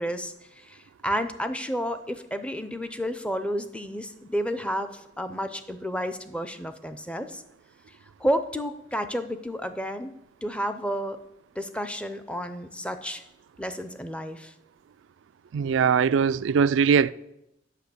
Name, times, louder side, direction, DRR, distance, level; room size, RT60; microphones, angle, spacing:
voice 1, 0.0-7.4 8.2-10.1 10.4-11.2 11.6-13.2 13.6-14.5, equal, 5° left, 0.5 m, -31 dB
voice 2, 15.5-17.1, right 6 dB, 70° right, 0.3 m, -21 dB
8.4 x 6.8 x 6.8 m
head